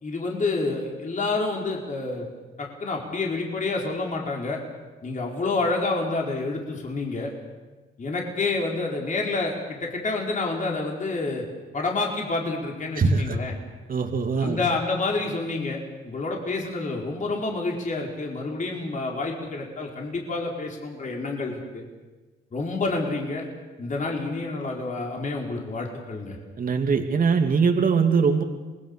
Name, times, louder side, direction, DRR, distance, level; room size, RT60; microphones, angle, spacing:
voice 1, 0.0-2.3 2.6-4.6 5.0-7.3 8.0-11.5 11.7-13.5 14.4-21.8 22.5-23.5 23.8-26.4, left 3 dB, 40° left, 0 dB, 4.8 m, -28 dB
voice 2, 13.0-13.4 13.9-14.6 26.6-28.4, right 5 dB, 45° right, 4 dB, 2.5 m, -22 dB
27.5 x 21.0 x 6.8 m, 1.2 s
cardioid pair, 90°, 20 cm